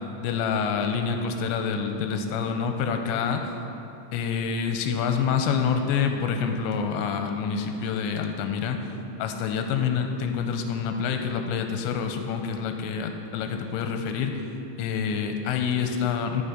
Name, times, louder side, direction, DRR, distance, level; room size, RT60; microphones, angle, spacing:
voice 1, 0.2-3.5 4.1-8.9 9.2-14.3 14.8-16.4, left 6 dB, 90° left, 5 dB, 2.9 m, -27 dB
13.5 x 4.6 x 5.0 m, 2.8 s
omnidirectional pair, 5.1 m